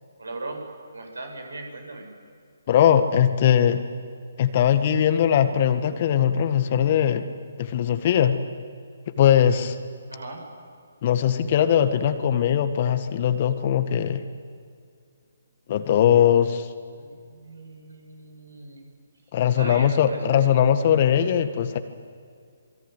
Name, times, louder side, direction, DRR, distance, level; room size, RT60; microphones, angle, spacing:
voice 1, 0.2-0.6 0.9-2.1 10.1-10.4 16.9-18.8 19.5-20.5, right 2 dB, 75° right, 3 dB, 7.5 m, -38 dB
voice 2, 2.7-3.8 4.4-7.2 7.6-8.4 9.2-9.8 11.0-14.2 15.7-16.7 19.3-21.8, left 9 dB, 40° left, 9 dB, 1.7 m, -20 dB
27.5 x 22.0 x 9.5 m, 2.2 s
figure-of-eight pair, 140°, 0 cm